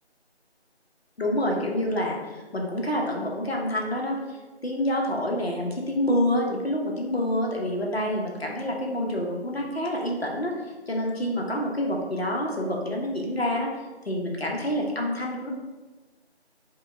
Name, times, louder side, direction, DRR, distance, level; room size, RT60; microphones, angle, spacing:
voice 1, 1.2-4.2 4.6-10.5 10.9-13.7 14.0-15.5, left 1 dB, 65° left, -1 dB, 0.9 m, -27 dB
5.0 x 2.3 x 3.3 m, 1.2 s
figure-of-eight pair, 180°, 33 cm